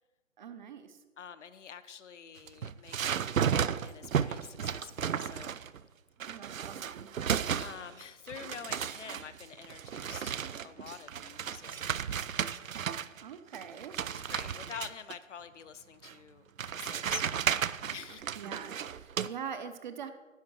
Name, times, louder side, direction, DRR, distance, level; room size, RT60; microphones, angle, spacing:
voice 1, 0.4-1.0 6.3-7.1 13.2-13.9 18.3-20.1, right 7 dB, 35° right, 9 dB, 0.8 m, -43 dB
voice 2, 1.2-5.6 7.6-12.0 14.1-17.5 17.9-18.3, left 7 dB, 65° left, 12 dB, 0.8 m, -47 dB
sound 1, 2.4-5.8 6.2-8.0 8.3-13.2 13.5-15.2 16.0-16.1 16.6-19.3, right 8 dB, 80° right, 0.6 m, -34 dB
10.5 x 5.6 x 7.3 m, 1.3 s
figure-of-eight pair, 140°, 39 cm